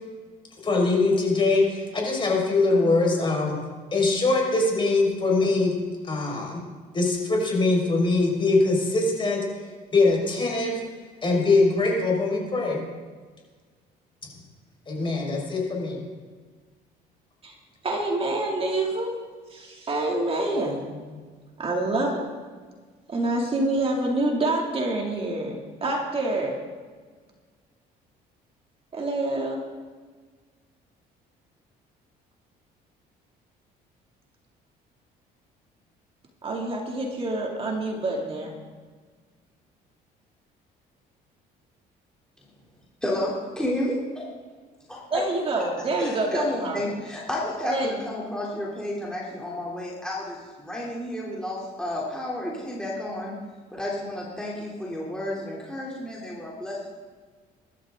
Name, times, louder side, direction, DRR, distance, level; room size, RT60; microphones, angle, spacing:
voice 1, 0.6-3.5 3.9-5.7 6.1-6.6 6.9-9.4 9.9-10.7 11.2-12.8 14.9-16.0, left 3 dB, 30° left, -1 dB, 5.4 m, -22 dB
voice 2, 17.8-19.1 19.5-21.0 21.6-22.2 23.1-26.5 28.9-29.6 36.4-38.5 45.1-46.8 47.6-47.9, right 2 dB, 35° right, 0 dB, 2.7 m, -27 dB
voice 3, 43.0-44.2 44.9-45.2 46.0-53.3 53.7-56.9, left 1 dB, 5° left, -5 dB, 3.4 m, -31 dB
22.5 x 12.5 x 3.9 m, 1.5 s
cardioid pair, 110°, 17 cm